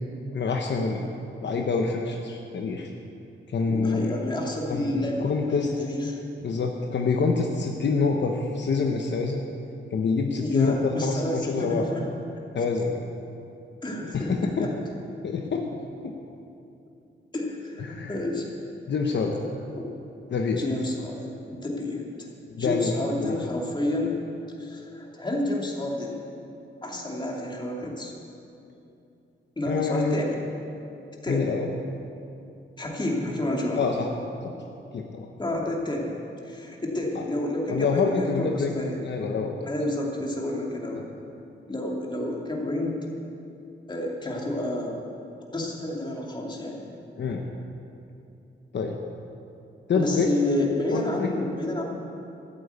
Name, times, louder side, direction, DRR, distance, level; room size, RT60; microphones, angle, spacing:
voice 1, 0.3-1.0 1.4-2.9 3.5-4.1 4.7-5.7 6.4-9.4 9.9-10.8 11.0-11.9 12.5-13.0 14.1-14.7 15.2-15.7 16.0-16.1 17.8-18.2 18.9-19.3 20.3-20.6 22.5-22.9 23.2-23.3 29.7-30.2 31.3-31.7 33.8-34.1 34.4-34.5 34.9-35.3 37.1-37.2 37.7-39.6 47.2-47.4 48.7-49.0 49.9-50.3 50.9-51.3, left 4 dB, 60° left, 2 dB, 1.0 m, -26 dB
voice 2, 3.7-6.2 10.4-12.1 13.8-14.7 17.3-18.5 19.7-20.0 20.6-22.3 22.6-24.2 24.6-26.2 26.8-28.1 29.6-30.5 31.2-31.6 32.8-33.8 35.4-36.1 36.4-39.0 39.6-41.0 41.7-43.0 43.9-45.0 45.5-46.9 49.9-51.8, left 1 dB, 20° left, -2 dB, 2.5 m, -30 dB
13.5 x 8.7 x 8.2 m, 2.7 s
wide cardioid pair, 110°, 21 cm